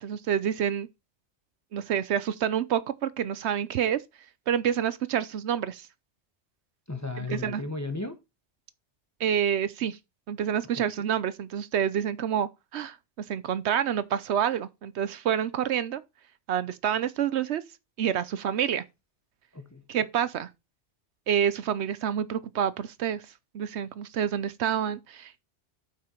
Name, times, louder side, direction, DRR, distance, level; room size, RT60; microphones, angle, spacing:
voice 1, 0.0-0.9 1.7-4.0 4.5-5.9 7.3-7.6 9.2-10.0 10.3-16.0 16.5-17.6 18.0-18.8 19.9-20.5 21.3-25.4, right 9 dB, 70° right, 0.9 m, -28 dB
voice 2, 6.9-8.2 10.7-10.9 19.5-19.8, left 3 dB, 15° left, 1.0 m, -35 dB
8.6 x 5.6 x 4.4 m
omnidirectional pair, 1.2 m